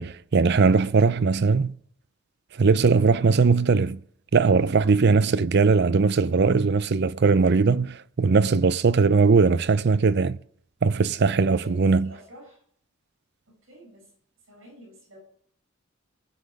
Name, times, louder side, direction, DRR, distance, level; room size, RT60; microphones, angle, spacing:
voice 1, 0.0-1.7 2.6-4.0 4.3-10.4 10.8-12.1, right 4 dB, 55° right, 0.5 m, -20 dB
voice 2, 11.4-12.6 13.5-14.1 14.5-15.2, right 1 dB, 85° right, 7.1 m, -48 dB
19.5 x 7.4 x 4.8 m
head